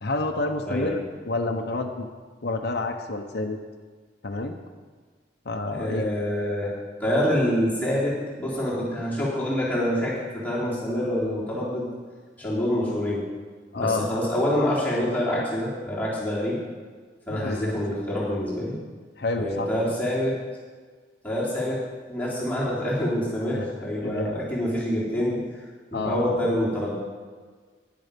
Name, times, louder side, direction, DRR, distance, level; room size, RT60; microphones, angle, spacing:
voice 1, 0.0-2.1 2.4-3.6 4.2-4.6 5.4-6.1 13.7-14.1 17.3-17.7 19.2-19.7 23.5-23.7 24.0-24.4 25.9-26.4, left 2 dB, 60° left, 2 dB, 0.9 m, -29 dB
voice 2, 5.7-6.7 7.0-11.9 12.4-13.2 13.8-16.6 17.3-18.8 19.4-20.4 21.2-21.8 22.1-25.6 25.9-26.9, equal, 10° left, -8 dB, 3.3 m, -26 dB
11.0 x 10.5 x 5.2 m, 1.5 s
head